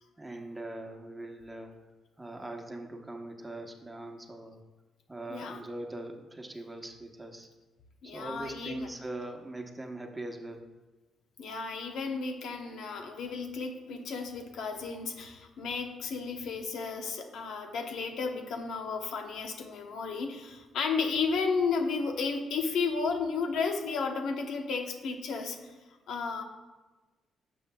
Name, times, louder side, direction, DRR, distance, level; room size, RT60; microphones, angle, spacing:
voice 1, 0.2-1.7 2.2-4.6 5.1-7.5 8.0-10.7, right 1 dB, 15° right, 2 dB, 1.0 m, -41 dB
voice 2, 5.3-5.6 8.0-8.9 11.4-25.6 26.1-26.4, left 4 dB, 75° left, 4 dB, 0.9 m, -33 dB
11.5 x 7.2 x 2.3 m, 1.2 s
cardioid pair, 90°, 0 cm